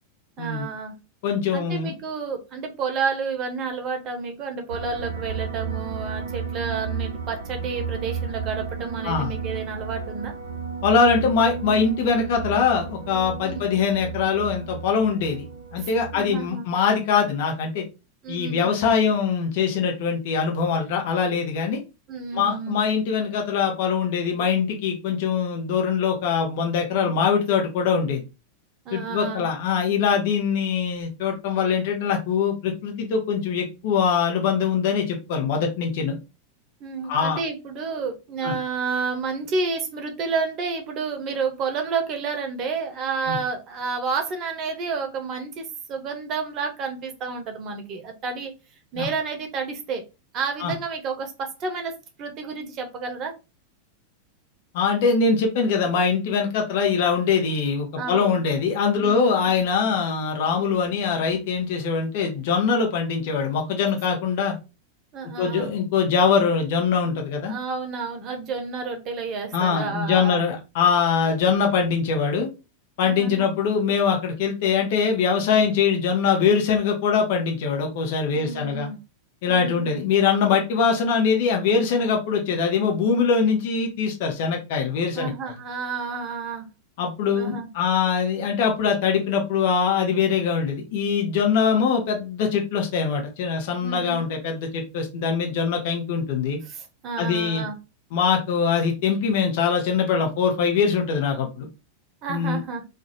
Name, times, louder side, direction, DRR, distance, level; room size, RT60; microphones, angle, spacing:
voice 1, 0.4-0.9 1.5-10.3 13.4-13.7 15.8-16.6 18.2-18.7 22.1-22.8 28.9-29.5 36.8-48.5 48.9-50.0 50.3-51.9 52.2-53.3 58.0-58.4 59.0-59.5 65.1-65.8 67.4-70.4 73.0-73.5 78.3-79.0 79.5-79.9 85.1-86.7 87.3-87.7 93.8-94.2 96.6-97.8 102.2-102.8, right 5 dB, 35° right, 5 dB, 0.7 m, -30 dB
voice 2, 1.2-1.9 9.0-9.3 10.8-15.4 15.7-17.8 18.3-21.8 22.3-28.2 28.9-36.2 37.1-37.4 38.4-38.5 43.3-43.4 49.0-49.1 50.6-50.7 54.7-64.5 65.4-67.5 69.5-72.5 73.0-78.9 79.4-85.3 87.0-96.6 97.2-97.6 98.1-101.7 102.3-102.6, left 6 dB, 50° left, 2 dB, 0.9 m, -23 dB
sound 1, 4.7-16.5, right 5 dB, 75° right, 0.5 m, -33 dB
2.5 x 2.2 x 4.0 m, 0.28 s
figure-of-eight pair, 90°, 0 cm